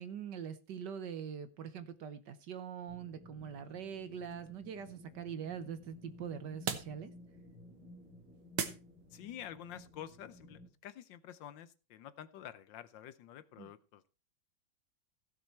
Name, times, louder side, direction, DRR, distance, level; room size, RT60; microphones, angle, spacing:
voice 1, 0.0-7.1 13.6-13.7, right 8 dB, 65° right, 12 dB, 1.4 m, -43 dB
sound 1, 2.9-10.7, left 1 dB, 35° right, 6.9 m, -55 dB
sound 2, 3.4-9.5, right 8 dB, 85° right, 2.0 m, -45 dB
voice 2, 9.1-14.1, left 10 dB, 70° left, 15 dB, 1.3 m, -49 dB
16.0 x 7.0 x 4.3 m, 0.31 s
omnidirectional pair, 2.3 m